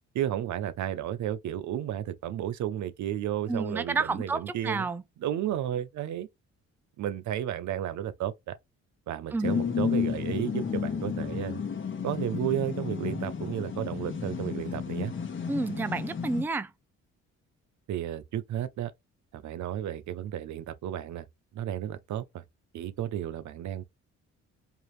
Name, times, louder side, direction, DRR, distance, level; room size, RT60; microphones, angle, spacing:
voice 1, 0.1-4.9 5.2-6.3 7.0-8.6 9.1-11.6 12.0-15.1 17.9-18.9 19.3-21.2 21.5-22.4 22.7-23.8, right 11 dB, 70° right, 0.7 m, -33 dB
voice 2, 3.5-5.0 9.3-9.6 15.5-16.7, right 3 dB, 5° right, 0.4 m, -30 dB
sound 1, 9.4-16.4, left 6 dB, 40° left, 1.1 m, -32 dB
4.6 x 2.7 x 3.2 m
cardioid pair, 90°, 30 cm